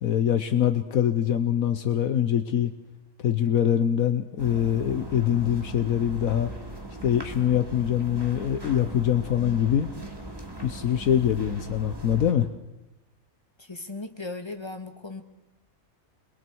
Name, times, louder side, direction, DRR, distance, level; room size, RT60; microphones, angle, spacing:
voice 1, 0.0-2.7 3.2-6.5 7.0-9.9 10.6-12.5, left 9 dB, 75° left, 8 dB, 1.3 m, -24 dB
sound 1, 4.4-12.3, right 2 dB, 15° right, 2.6 m, -40 dB
voice 2, 13.6-15.2, left 3 dB, 20° left, 6 dB, 1.6 m, -37 dB
29.5 x 22.0 x 4.6 m, 1.0 s
omnidirectional pair, 1.5 m